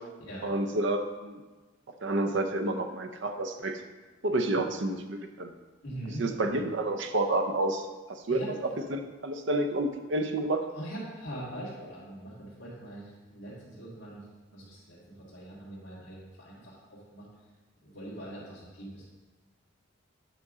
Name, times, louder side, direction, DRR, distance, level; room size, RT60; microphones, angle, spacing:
voice 1, 0.4-1.4 2.0-3.8 4.2-5.5 6.2-10.7, right 2 dB, 65° right, 6 dB, 0.6 m, -29 dB
voice 2, 5.8-6.3 8.3-8.5 10.7-14.2 14.5-17.3 17.8-19.1, right 1 dB, 60° left, -10 dB, 2.0 m, -42 dB
9.2 x 5.2 x 3.6 m, 1.3 s
head